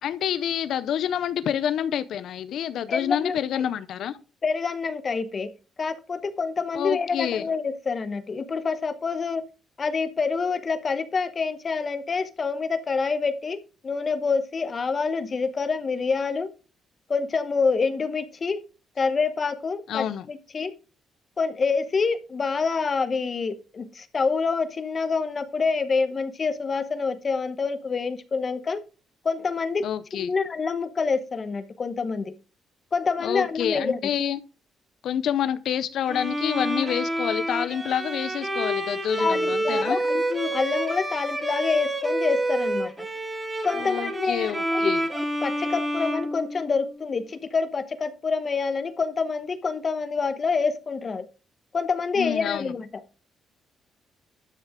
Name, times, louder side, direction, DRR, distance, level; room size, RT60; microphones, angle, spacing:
voice 1, 0.0-4.2 6.7-7.4 19.9-20.3 29.8-30.3 33.2-34.4 35.0-40.0 43.8-45.0 52.2-52.7, left 9 dB, 75° left, 0.5 m, -28 dB
voice 2, 2.9-3.6 4.4-5.5 5.8-9.4 9.8-16.5 17.1-18.6 19.0-20.7 21.4-28.8 29.2-29.8 30.1-32.3 32.9-34.0 39.2-43.1 43.6-51.3 51.7-52.9, left 4 dB, 40° left, 1.0 m, -27 dB
Bowed string instrument, 36.1-47.1, right 1 dB, 20° right, 1.8 m, -28 dB
12.0 x 6.5 x 3.6 m
cardioid pair, 90°, 0 cm